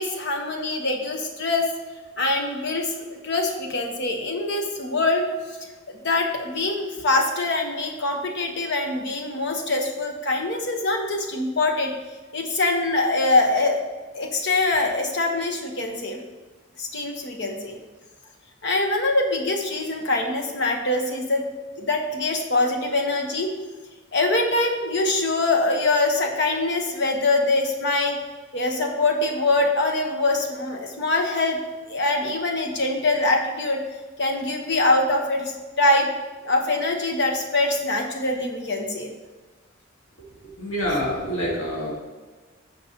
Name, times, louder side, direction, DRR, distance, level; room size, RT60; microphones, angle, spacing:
voice 1, 0.0-1.6 2.2-2.9 3.2-5.3 5.6-5.7 6.0-11.9 12.3-13.8 14.1-16.2 16.8-17.8 18.6-21.4 21.8-23.5 24.1-28.2 28.5-31.6 31.9-33.8 34.2-36.1 36.4-39.1, left 2 dB, 60° left, 2 dB, 1.3 m, -23 dB
voice 2, 40.4-41.9, equal, 80° left, -5 dB, 2.1 m, -27 dB
14.5 x 5.2 x 3.0 m, 1.3 s
head